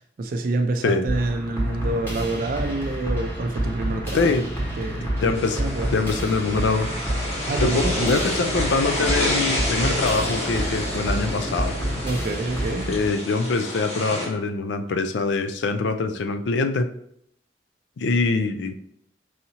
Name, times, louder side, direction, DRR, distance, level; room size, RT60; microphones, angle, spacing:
voice 1, 0.2-4.3 4.8-5.9 7.5-8.1 12.0-13.0, right 2 dB, 50° right, 4 dB, 0.4 m, -27 dB
sound 1, 1.1-13.1, right 1 dB, 15° left, 1.3 m, -29 dB
voice 2, 4.1-4.5 5.2-5.6 5.9-6.9 7.6-11.7 12.9-16.9 18.0-18.7, left 3 dB, 80° left, 8 dB, 0.4 m, -24 dB
sound 2, 5.3-14.3, left 1 dB, 40° left, 1.2 m, -29 dB
4.8 x 2.7 x 2.8 m, 0.72 s
head